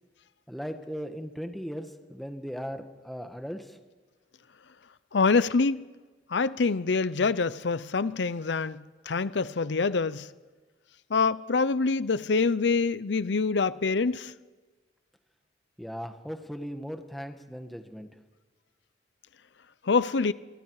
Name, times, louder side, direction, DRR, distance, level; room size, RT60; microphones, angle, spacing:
voice 1, 0.5-3.6 15.8-18.1, equal, ahead, 1.6 m, -38 dB
voice 2, 5.1-5.8 6.3-10.3 11.1-14.3 19.8-20.3, left 4 dB, 75° left, 0.6 m, -25 dB
29.0 x 23.0 x 4.9 m
head